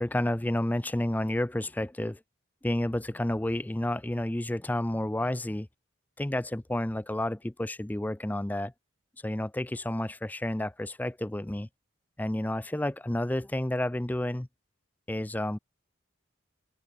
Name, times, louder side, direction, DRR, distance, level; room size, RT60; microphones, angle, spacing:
voice 1, 0.0-2.2 2.6-5.7 6.2-8.7 9.2-11.7 12.2-14.5 15.1-15.6, left 1 dB, 10° left, 0.4 m, -30 dB
head